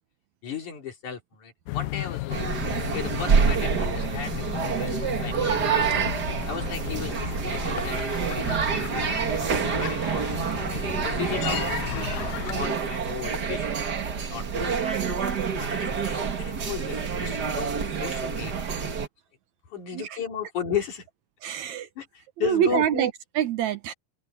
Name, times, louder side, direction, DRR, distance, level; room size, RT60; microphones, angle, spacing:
voice 1, 0.4-5.8 6.5-14.8 15.6-18.8 19.7-21.1 22.0-23.0, left 7 dB, 65° left, 5.0 m, -36 dB
sound 1, 1.7-12.7, left 17 dB, 80° left, 2.1 m, -34 dB
sound 2, 2.3-19.1, right 6 dB, 40° right, 1.6 m, -27 dB
voice 2, 21.4-21.9 22.4-23.9, right 9 dB, 70° right, 2.2 m, -26 dB
open air
omnidirectional pair, 3.7 m